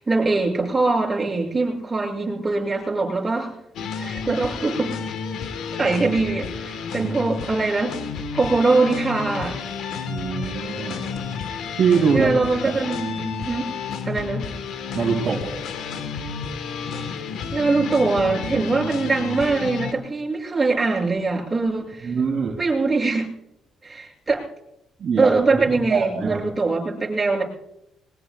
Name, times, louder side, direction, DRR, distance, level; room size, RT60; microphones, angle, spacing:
voice 1, 0.0-3.5 4.0-4.9 5.7-8.0 8.3-9.6 12.1-13.7 14.1-14.4 17.2-17.3 17.5-22.1 22.6-23.3 23.8-24.4 25.2-27.4, right 3 dB, 20° right, -4 dB, 7.2 m, -22 dB
sound 1, 3.8-19.9, left 6 dB, 80° left, 1.4 m, -31 dB
voice 2, 10.1-11.0 11.8-12.3 12.6-12.7 14.9-15.5 22.0-22.5 25.0-25.6 25.9-26.4, right 6 dB, 50° right, -1 dB, 2.8 m, -23 dB
21.5 x 20.5 x 2.4 m, 0.82 s
cardioid pair, 90°, 0 cm